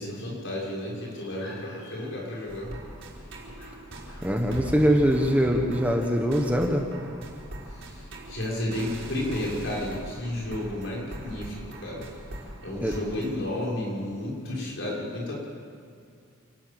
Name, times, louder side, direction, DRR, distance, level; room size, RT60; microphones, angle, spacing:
voice 1, 0.0-2.7 3.6-3.7 4.1-4.2 8.3-11.6 11.8-12.0 12.6-15.4, left 1 dB, 60° left, -3 dB, 6.3 m, -32 dB
sound 1, 2.5-13.4, right 1 dB, 65° right, 4.5 m, -41 dB
voice 2, 4.2-6.9 12.8-13.0, equal, 5° right, 2 dB, 1.3 m, -23 dB
28.0 x 12.5 x 8.9 m, 2.2 s
head